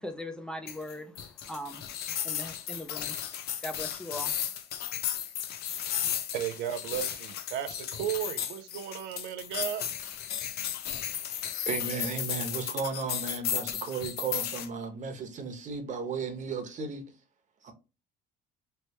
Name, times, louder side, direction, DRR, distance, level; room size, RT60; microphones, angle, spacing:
voice 1, 0.0-3.2 3.6-4.3, left 1 dB, 5° left, 0.5 m, -40 dB
sound 1, 0.7-14.7, left 10 dB, 70° left, 0.6 m, -34 dB
voice 2, 6.3-9.9, right 10 dB, 90° right, 0.4 m, -34 dB
voice 3, 11.1-17.0 17.6-17.7, right 5 dB, 45° right, 1.0 m, -35 dB
3.3 x 2.9 x 2.9 m
cardioid pair, 110°, 17 cm